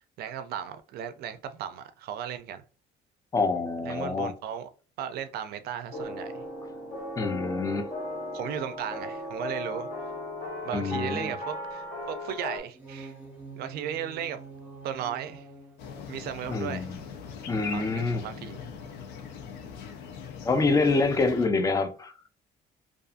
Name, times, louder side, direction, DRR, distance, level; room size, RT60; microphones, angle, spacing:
voice 1, 0.2-2.6 3.8-4.7 5.0-6.4 8.3-9.9 10.6-13.1 13.6-14.4 14.8-15.5 16.1-16.9 17.7-18.6, right 9 dB, 70° right, 0.4 m, -36 dB
voice 2, 3.3-4.3 7.2-7.9 10.7-11.3 16.5-17.0 17.5-18.2 20.4-22.1, left 3 dB, 20° left, 0.4 m, -26 dB
sound 1, 5.9-12.6, left 1 dB, 50° left, 1.1 m, -36 dB
sound 2, 12.6-18.6, right 3 dB, 10° right, 0.9 m, -48 dB
sound 3, 15.8-21.5, left 6 dB, 90° left, 0.5 m, -41 dB
2.6 x 2.4 x 2.4 m
cardioid pair, 110°, 17 cm